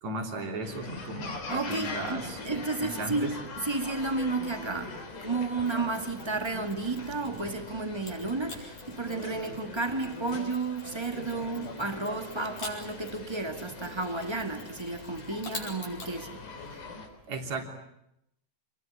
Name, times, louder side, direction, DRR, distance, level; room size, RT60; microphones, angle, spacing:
voice 1, 0.0-3.4 17.3-17.6, right 2 dB, 65° right, 4.7 m, -36 dB
sound 1, 0.6-17.1, left 3 dB, 85° left, 5.4 m, -42 dB
voice 2, 1.5-16.5, right 3 dB, 15° right, 1.2 m, -32 dB
Mechanisms, 5.6-7.5 8.0-16.1, left 3 dB, 60° left, 6.3 m, -47 dB
28.5 x 21.5 x 9.8 m
omnidirectional pair, 3.5 m